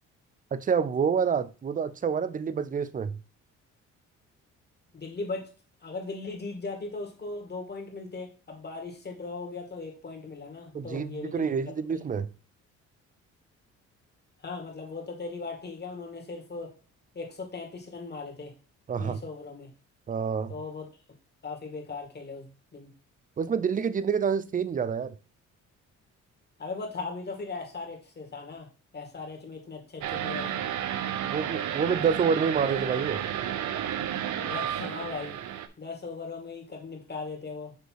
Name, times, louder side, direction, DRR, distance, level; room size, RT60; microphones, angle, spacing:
voice 1, 0.5-3.2 10.7-12.3 18.9-19.2 20.1-20.5 23.4-25.1 31.3-33.2, right 6 dB, 25° right, 0.5 m, -27 dB
voice 2, 4.9-5.5 5.8-11.5 11.9-12.0 14.4-16.7 17.1-18.5 19.0-19.7 20.5-20.9 21.4-22.9 26.6-30.6 34.4-35.4 35.8-37.8, left 3 dB, 35° left, 2.1 m, -38 dB
sound 1, 30.0-35.7, right 10 dB, 75° right, 0.8 m, -32 dB
6.7 x 3.2 x 4.6 m
cardioid pair, 85°, 30 cm